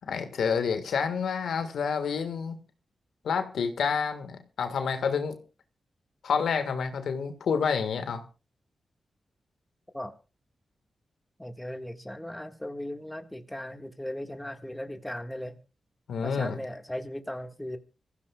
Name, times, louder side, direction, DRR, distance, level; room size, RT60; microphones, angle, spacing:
voice 1, 0.1-2.6 3.2-5.3 6.2-8.2 16.1-16.6, left 6 dB, 90° left, 7 dB, 1.6 m, -28 dB
voice 2, 11.4-15.6 16.2-17.8, left 1 dB, 10° left, 6 dB, 1.7 m, -37 dB
25.0 x 15.0 x 2.3 m, 0.32 s
cardioid pair, 65°, 0 cm